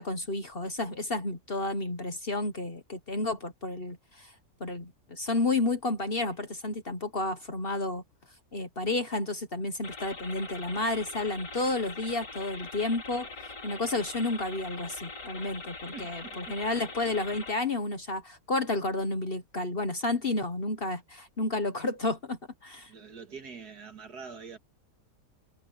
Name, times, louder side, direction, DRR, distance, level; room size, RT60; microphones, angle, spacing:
voice 1, 0.0-4.3 4.6-8.0 8.5-13.3 13.6-22.9, left 2 dB, 35° left, 1.3 m, -31 dB
sound 1, 9.8-17.5, left 3 dB, 75° left, 5.1 m, -43 dB
voice 2, 15.9-16.6 22.9-24.6, right 5 dB, 65° right, 2.5 m, -45 dB
omnidirectional pair, 1.8 m